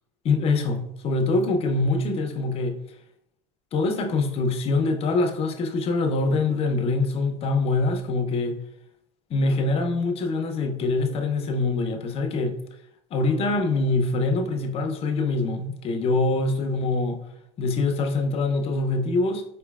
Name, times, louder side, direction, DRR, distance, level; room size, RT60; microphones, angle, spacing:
voice 1, 0.2-2.8 3.7-8.6 9.3-12.6 13.1-17.2 17.6-19.6, left 3 dB, 40° left, 0.6 m, -24 dB
4.3 x 3.0 x 2.3 m
supercardioid pair, 110°, 15 cm